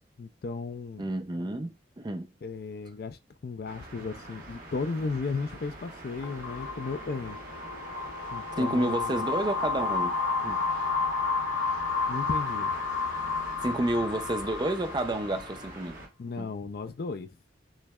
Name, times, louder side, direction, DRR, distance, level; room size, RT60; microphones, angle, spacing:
voice 1, 0.2-1.1 2.4-7.4 8.3-9.3 12.1-12.7 16.2-17.3, left 4 dB, 55° left, 0.4 m, -35 dB
voice 2, 1.0-2.3 8.6-10.2 10.4-10.6 13.6-16.0 16.4-16.5, right 1 dB, 25° right, 0.4 m, -30 dB
sound 1, 3.6-16.1, right 2 dB, 50° right, 1.4 m, -45 dB
sound 2, 6.2-15.7, left 4 dB, 90° left, 0.7 m, -31 dB
6.2 x 3.1 x 2.3 m
head